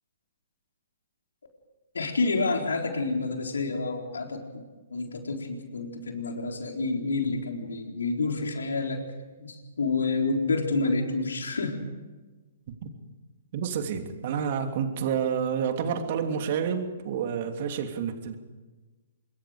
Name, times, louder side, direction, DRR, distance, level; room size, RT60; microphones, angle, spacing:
voice 1, 1.9-4.6 4.9-9.0 9.4-11.9, left 3 dB, 75° left, 3 dB, 4.0 m, -29 dB
voice 2, 13.5-18.4, right 7 dB, 50° right, 5 dB, 3.0 m, -29 dB
25.5 x 22.5 x 5.1 m, 1.2 s
figure-of-eight pair, 125°, 0 cm